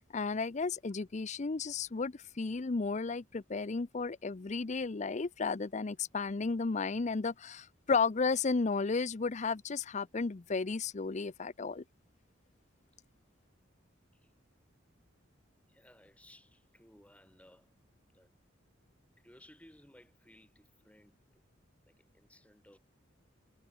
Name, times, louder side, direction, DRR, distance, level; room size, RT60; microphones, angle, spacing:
voice 1, 0.1-11.8, left 4 dB, 35° left, 0.6 m, -33 dB
voice 2, 15.7-17.8 18.1-18.3 19.2-21.4 21.9-22.8, left 1 dB, 5° left, 4.5 m, -60 dB
head